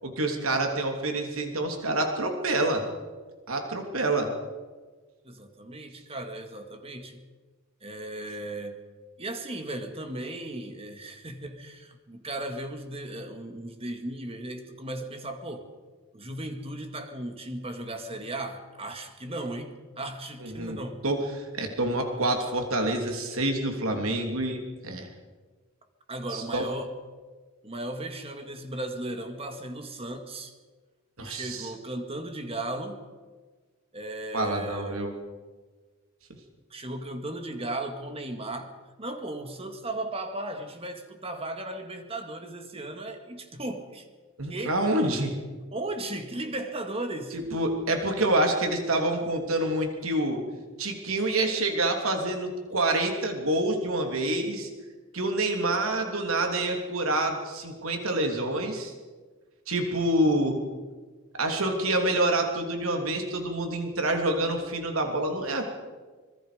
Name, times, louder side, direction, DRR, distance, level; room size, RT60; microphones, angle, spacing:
voice 1, 0.0-2.8 3.5-4.3 20.4-20.8 21.0-25.1 26.3-26.6 31.2-31.7 34.3-35.1 44.4-45.3 47.3-50.4 50.8-54.7 55.1-58.9 59.7-60.6 61.4-65.6, right 1 dB, 90° right, 3 dB, 3.2 m, -27 dB
voice 2, 5.2-7.2 7.8-8.8 9.2-15.7 16.1-21.0 26.1-27.0 27.6-30.5 31.2-33.0 33.9-35.0 36.7-44.1 44.5-44.8 45.7-47.4, right 1 dB, 30° right, 6 dB, 2.1 m, -36 dB
26.0 x 22.0 x 5.2 m, 1.4 s
head